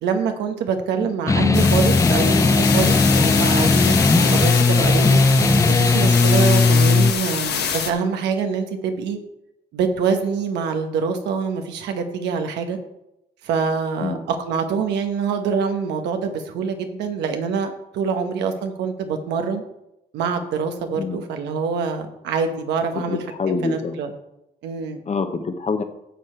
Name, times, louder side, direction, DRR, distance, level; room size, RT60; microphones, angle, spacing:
voice 1, 0.0-5.2 5.7-9.2 9.7-12.8 13.4-19.6 20.1-23.2 23.5-24.1 24.6-25.0, right 5 dB, 90° right, 6 dB, 1.2 m, -25 dB
sound 1, 1.3-7.1, left 3 dB, 20° left, 0.5 m, -17 dB
sound 2, 1.5-7.9, left 8 dB, 70° left, 1.1 m, -25 dB
voice 2, 20.9-21.2 22.9-24.0 25.1-25.8, left 4 dB, 40° left, 8 dB, 1.2 m, -26 dB
11.0 x 6.5 x 4.5 m, 0.85 s
supercardioid pair, 70°, 17 cm